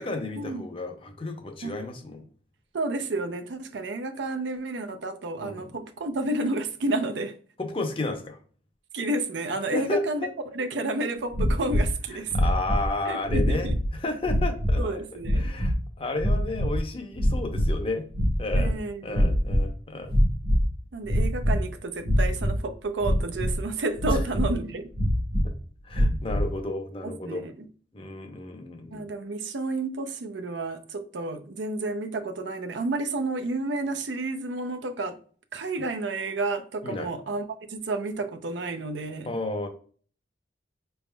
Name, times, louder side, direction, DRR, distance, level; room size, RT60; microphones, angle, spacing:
voice 1, 0.0-2.2 5.4-5.8 7.6-8.4 9.7-10.3 12.1-13.7 14.0-15.0 15.3-18.0 18.4-20.1 24.1-24.2 25.8-27.4 27.9-29.0 36.8-37.1 39.3-39.7, left 2 dB, 30° left, 0.6 m, -32 dB
voice 2, 2.7-7.3 8.9-10.3 10.5-12.3 13.1-13.8 14.8-15.5 18.6-19.4 20.9-24.9 27.0-27.7 28.9-35.2 35.5-39.4, right 2 dB, 85° right, 0.5 m, -31 dB
sound 1, 11.3-11.9 12.3-12.9 13.3-13.9 14.2-14.8 15.2-15.7 16.2-16.8 17.1-17.8 18.1-18.8 19.1-19.7 20.1-20.7 21.0-21.6 22.0-22.6 23.0-23.6 24.0-24.6 24.9-25.5 25.9-26.5, equal, 55° right, 0.9 m, -24 dB
5.0 x 3.4 x 2.2 m
head